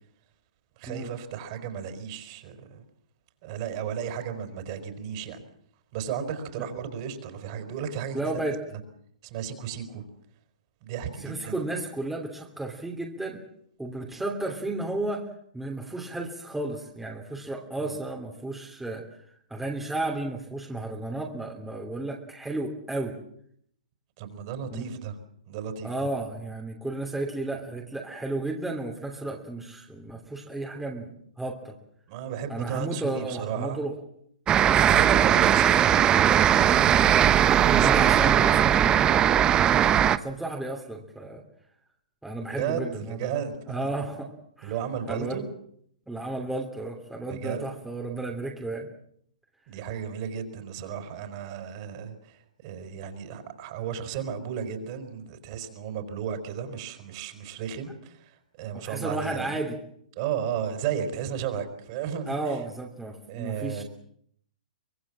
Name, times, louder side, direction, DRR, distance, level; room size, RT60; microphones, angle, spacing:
voice 1, 0.8-2.8 3.4-5.4 5.9-8.4 9.2-10.0 10.8-11.6 17.8-18.0 24.2-25.2 25.5-26.1 32.1-33.8 34.7-36.0 36.6-38.6 42.5-43.9 44.6-45.5 47.3-47.7 49.7-59.7 60.1-62.6 63.3-63.8, right 8 dB, 40° right, 8 dB, 4.9 m, -34 dB
voice 2, 8.1-8.6 11.2-13.4 13.8-15.3 15.5-19.0 19.5-23.2 24.7-24.9 25.8-31.7 32.5-33.9 37.8-39.7 40.1-41.4 42.2-44.3 44.6-44.7 45.1-45.4 46.1-48.9 58.7-59.8 62.3-63.8, right 2 dB, 5° right, 1 dB, 3.0 m, -33 dB
sound 1, 34.5-40.2, right 10 dB, 20° right, 1.0 m, -19 dB
24.5 x 21.5 x 7.5 m, 0.67 s
hypercardioid pair, 135°, 4 cm